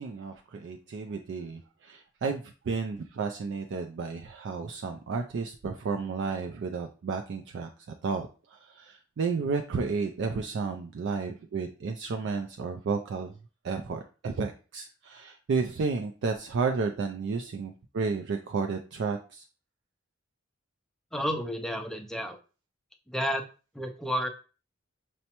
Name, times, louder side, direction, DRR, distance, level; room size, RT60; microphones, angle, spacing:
voice 1, 0.0-13.3 13.6-19.5, right 4 dB, 60° right, 4 dB, 0.4 m, -32 dB
voice 2, 21.1-22.4 23.1-23.4 23.7-24.3, equal, ahead, 4 dB, 0.4 m, -31 dB
5.4 x 2.0 x 2.9 m, 0.34 s
head